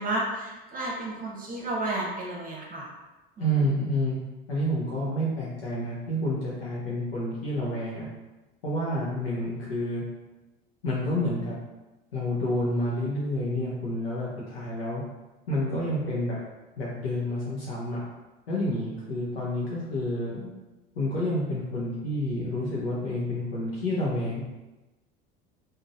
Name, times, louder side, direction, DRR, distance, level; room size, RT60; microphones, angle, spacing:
voice 1, 0.0-2.9 3.4-3.7, right 2 dB, 30° right, -3 dB, 0.9 m, -32 dB
voice 2, 3.4-4.2 4.5-8.1 8.6-10.0 10.8-11.6 12.1-15.0 15.5-16.4 16.8-18.0 18.5-20.5 20.9-24.4, equal, 85° left, -7 dB, 0.8 m, -29 dB
3.7 x 2.6 x 2.5 m, 1.1 s
hypercardioid pair, 75°, 30 cm